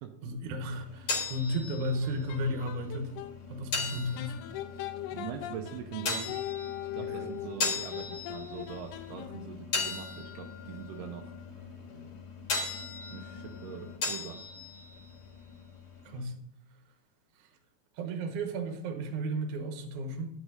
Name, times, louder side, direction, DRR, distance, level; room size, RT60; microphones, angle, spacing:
voice 1, 0.2-3.2 3.5-4.4 7.0-7.3 16.0-16.3 17.4-17.5 18.0-20.3, right 1 dB, 60° right, 4 dB, 2.4 m, -34 dB
sound 1, 0.7-16.2, left 4 dB, 45° left, 2.1 m, -38 dB
sound 2, 1.9-3.4 4.2-9.6, left 13 dB, 85° left, 2.5 m, -40 dB
voice 2, 5.1-6.4 6.9-11.4 13.1-14.4, right 10 dB, 80° right, 3 dB, 2.7 m, -42 dB
11.0 x 8.1 x 4.0 m, 0.70 s
omnidirectional pair, 4.7 m